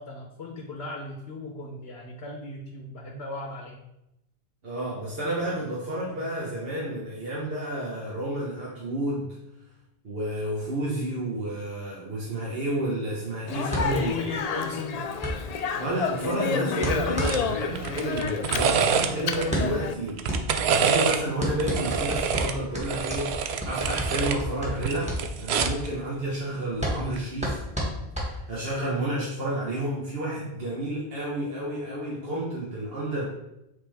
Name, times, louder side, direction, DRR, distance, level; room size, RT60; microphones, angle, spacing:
voice 1, 0.0-3.8 13.9-15.1, left 3 dB, 80° left, 0 dB, 1.1 m, -36 dB
voice 2, 4.6-9.4 10.0-14.1 15.8-23.4 23.6-25.1 25.4-27.6 28.2-33.2, right 1 dB, 65° right, -5 dB, 1.4 m, -30 dB
Speech, 13.5-19.9, left 6 dB, 55° left, 0.4 m, -30 dB
sound 1, 13.7-28.8, equal, 5° right, 1.5 m, -32 dB
sound 2, 17.2-17.4 17.8-19.5 20.1-21.2 21.6-24.4 24.7-25.9 27.0-27.2, right 6 dB, 85° right, 0.9 m, -26 dB
8.2 x 3.7 x 3.4 m, 0.86 s
omnidirectional pair, 1.1 m